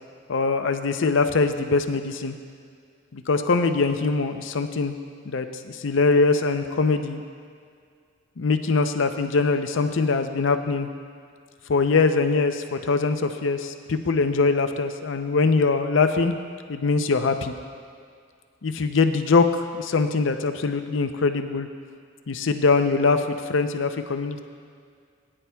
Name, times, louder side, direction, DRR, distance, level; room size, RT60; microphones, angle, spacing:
voice 1, 0.3-2.3 3.1-4.9 5.3-5.5 5.8-7.2 8.4-10.9 11.7-16.3 16.7-17.5 18.6-21.7 22.3-24.4, left 4 dB, 65° left, 8 dB, 0.6 m, -22 dB
18.5 x 10.0 x 2.3 m, 2.2 s
head